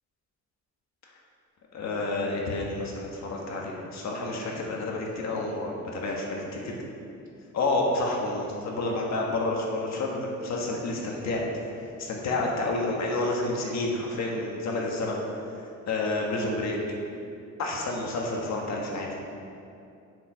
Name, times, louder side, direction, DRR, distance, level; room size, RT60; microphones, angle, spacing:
voice 1, 1.7-6.8 7.5-11.4 12.0-15.2 15.9-16.8 17.6-19.1, left 2 dB, 60° left, -1 dB, 1.4 m, -29 dB
8.3 x 4.9 x 5.6 m, 2.6 s
cardioid pair, 140°, 30 cm